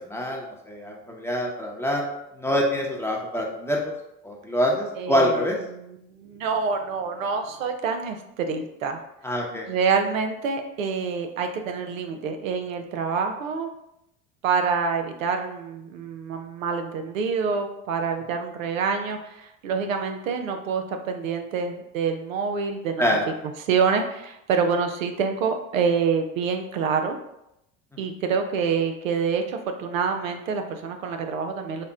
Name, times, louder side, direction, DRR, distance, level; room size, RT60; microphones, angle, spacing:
voice 1, 0.1-2.1 2.3-3.9 4.2-5.6 9.2-9.6 23.0-23.3, equal, 5° left, -1 dB, 0.8 m, -25 dB
voice 2, 5.0-5.4 5.7-9.0 9.7-13.7 14.4-23.0 23.6-27.2 28.0-31.9, right 5 dB, 85° right, 5 dB, 0.5 m, -26 dB
4.1 x 2.0 x 3.5 m, 0.84 s
hypercardioid pair, 65°, 39 cm